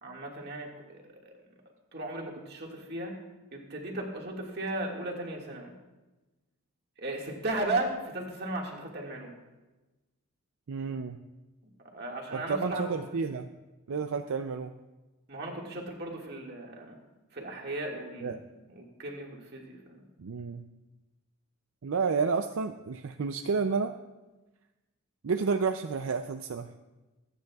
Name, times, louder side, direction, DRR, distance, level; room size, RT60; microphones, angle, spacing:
voice 1, 0.0-1.4 1.9-3.2 3.5-5.7 7.0-9.3 11.6-13.2 15.3-17.0 17.3-18.4 18.7-20.1, right 2 dB, 50° right, -1 dB, 1.9 m, -36 dB
voice 2, 10.7-11.2 12.3-13.5 13.9-14.7 18.2-18.4 20.2-20.6 21.8-23.9 25.2-26.7, right 5 dB, 75° right, 6 dB, 0.5 m, -30 dB
24.5 x 9.2 x 2.4 m, 1.1 s
head